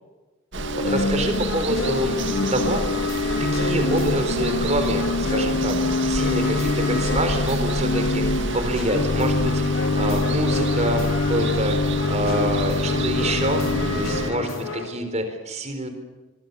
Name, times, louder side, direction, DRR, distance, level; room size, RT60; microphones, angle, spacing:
Organ / Church bell, 0.5-14.7, left 3 dB, 45° left, 0.8 m, -25 dB
Water, 0.5-14.3, right 2 dB, 55° right, 2.1 m, -30 dB
voice 1, 0.8-2.8 3.4-13.6 13.9-15.9, right 1 dB, 30° right, 7 dB, 4.2 m, -27 dB
sound 1, 0.9-14.9, left 3 dB, 65° left, 3.9 m, -33 dB
24.5 x 23.5 x 7.0 m, 1.2 s
head